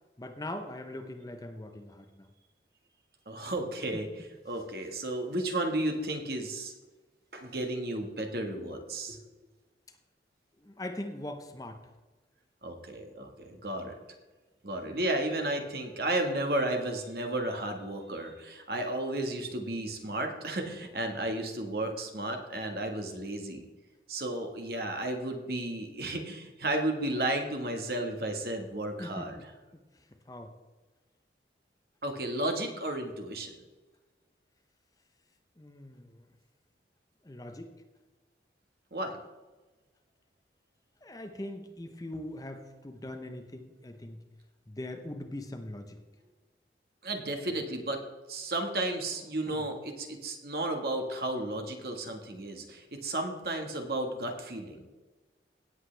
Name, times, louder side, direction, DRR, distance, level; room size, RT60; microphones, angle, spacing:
voice 1, 0.2-2.3 3.9-4.0 10.6-11.9 29.0-29.5 29.7-30.5 35.6-36.3 37.2-37.7 41.0-44.2 44.7-46.0 47.5-47.6 49.5-49.6, left 1 dB, 20° left, 7 dB, 0.8 m, -41 dB
voice 2, 3.3-6.7 7.3-9.2 12.6-14.0 14.6-23.7 24.1-29.4 32.0-33.5 38.9-39.2 47.0-48.0 48.3-54.9, right 1 dB, 55° right, 4 dB, 1.6 m, -33 dB
17.0 x 8.0 x 3.4 m, 1.2 s
head